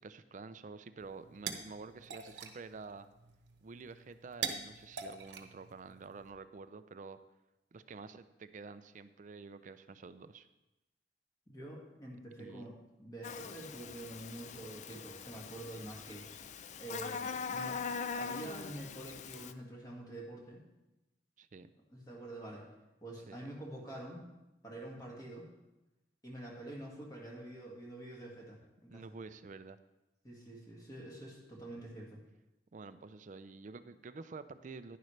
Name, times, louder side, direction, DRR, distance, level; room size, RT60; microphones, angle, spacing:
voice 1, 0.0-3.1 3.6-7.2 7.7-10.5 12.4-12.7 21.4-21.7 23.3-23.4 28.9-29.8 32.7-35.0, right 4 dB, 45° right, 12 dB, 0.4 m, -49 dB
sound 1, 1.0-6.3, right 6 dB, 80° right, 0.9 m, -45 dB
voice 2, 11.5-16.3 16.8-17.8 18.2-20.6 21.9-22.7 23.0-24.3 24.6-25.5 26.2-29.0 30.2-32.2, right 1 dB, 20° left, -2 dB, 2.0 m, -47 dB
Buzz, 13.2-19.5, left 6 dB, 40° left, 0.4 m, -42 dB
10.5 x 10.0 x 3.2 m, 0.97 s
head